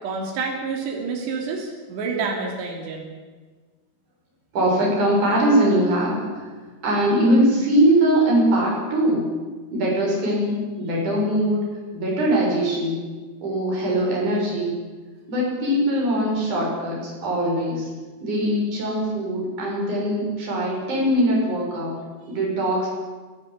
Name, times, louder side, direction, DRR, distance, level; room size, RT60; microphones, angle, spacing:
voice 1, 0.0-3.1, right 4 dB, 70° right, 0 dB, 5.1 m, -28 dB
voice 2, 4.5-6.5 6.8-9.3 9.7-11.6 11.9-13.0 13.4-14.8 15.3-17.9 18.2-21.9 22.3-22.9, right 1 dB, 45° right, -3 dB, 8.4 m, -21 dB
24.0 x 16.0 x 8.6 m, 1.4 s
omnidirectional pair, 5.1 m